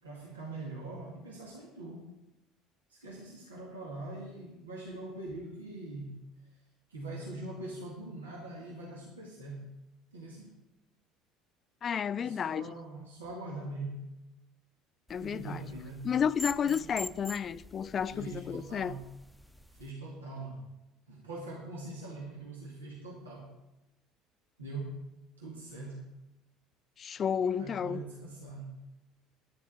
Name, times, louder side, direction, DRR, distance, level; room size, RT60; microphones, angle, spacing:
voice 1, 0.0-2.1 2.9-6.2 6.9-9.7 10.1-10.6 12.1-14.1 15.2-16.1 16.6-16.8 18.1-19.1 19.7-20.7 21.1-23.5 24.6-25.1 25.4-26.1 27.6-28.7, right 2 dB, 90° right, 2.1 m, -42 dB
voice 2, 11.8-12.8 15.1-15.6 16.0-19.0 27.0-28.0, left 7 dB, 40° left, 0.5 m, -31 dB
sound 1, 15.1-19.9, left 1 dB, ahead, 0.7 m, -46 dB
10.5 x 7.2 x 8.7 m
hypercardioid pair, 60°, 0 cm